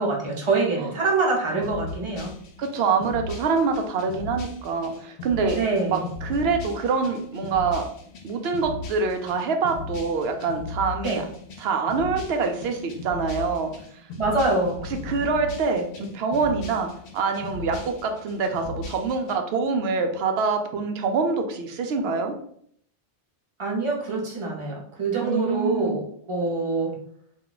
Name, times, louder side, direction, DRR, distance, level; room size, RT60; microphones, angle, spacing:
voice 1, 0.0-2.3 5.5-6.1 11.0-11.2 14.2-14.8 23.6-27.0, right 3 dB, 30° right, -2 dB, 0.7 m, -25 dB
sound 1, 1.6-19.3, left 3 dB, 80° left, 0.9 m, -38 dB
voice 2, 2.6-5.6 5.9-7.9 8.2-11.2 11.6-13.7 15.1-22.4 25.2-26.0, right 4 dB, 75° right, 5 dB, 0.8 m, -25 dB
2.4 x 2.2 x 3.8 m, 0.64 s
omnidirectional pair, 1.1 m